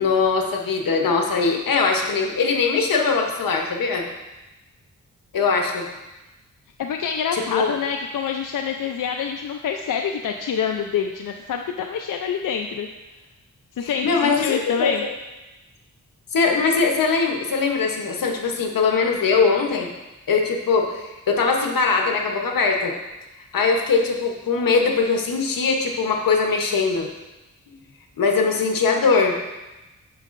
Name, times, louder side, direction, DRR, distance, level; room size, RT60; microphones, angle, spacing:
voice 1, 0.0-4.1 5.3-5.9 7.3-7.7 13.8-14.9 16.3-19.9 20.3-23.0 23.5-27.1 28.2-29.4, left 4 dB, 90° left, 2 dB, 1.0 m, -21 dB
voice 2, 6.8-12.9 13.8-15.0, left 7 dB, 75° left, 4 dB, 0.5 m, -26 dB
9.1 x 6.4 x 2.5 m, 1.0 s
cardioid pair, 75°, 33 cm